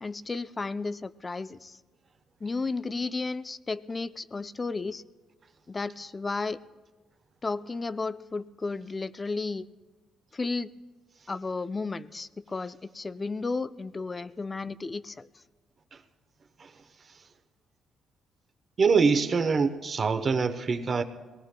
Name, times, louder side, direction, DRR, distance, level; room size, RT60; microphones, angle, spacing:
voice 1, 0.0-1.8 2.4-5.0 5.7-6.6 7.4-9.7 10.3-10.7 11.3-15.3, left 3 dB, 25° left, 14 dB, 0.4 m, -33 dB
voice 2, 18.8-21.0, right 5 dB, 45° right, 8 dB, 0.9 m, -24 dB
22.5 x 19.5 x 2.2 m, 1.3 s
cardioid pair, 90°, 0 cm